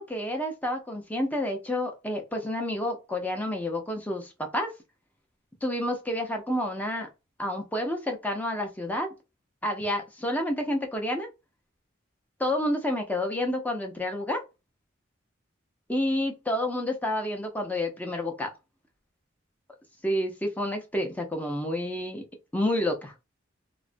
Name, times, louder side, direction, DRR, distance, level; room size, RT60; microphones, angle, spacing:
voice 1, 0.0-4.7 5.6-7.1 7.4-9.1 9.6-11.3 12.4-14.4 15.9-18.5 20.0-22.2 22.5-23.1, left 1 dB, 10° left, 3 dB, 0.5 m, -29 dB
2.4 x 2.1 x 2.5 m, 0.26 s
head